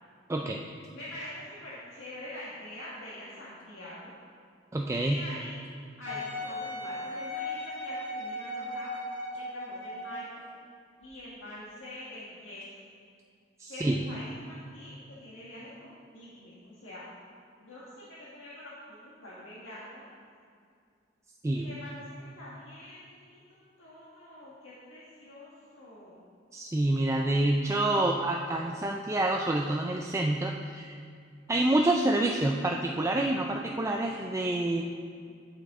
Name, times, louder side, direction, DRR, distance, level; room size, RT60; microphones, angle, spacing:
voice 1, 0.3-0.6 4.7-5.2 13.6-14.0 21.4-21.7 26.5-31.0 31.5-34.8, right 1 dB, 15° right, 1 dB, 0.3 m, -27 dB
voice 2, 0.9-4.1 4.9-5.6 6.0-8.9 9.4-10.4 11.0-12.8 13.7-17.1 17.6-20.0 21.5-26.2, left 1 dB, 85° left, -8 dB, 1.6 m, -45 dB
Wind instrument woodwind instrument, 6.1-10.4 11.0-11.1, left 1 dB, 45° left, 2.0 m, -37 dB
11.5 x 5.7 x 3.7 m, 2.3 s
head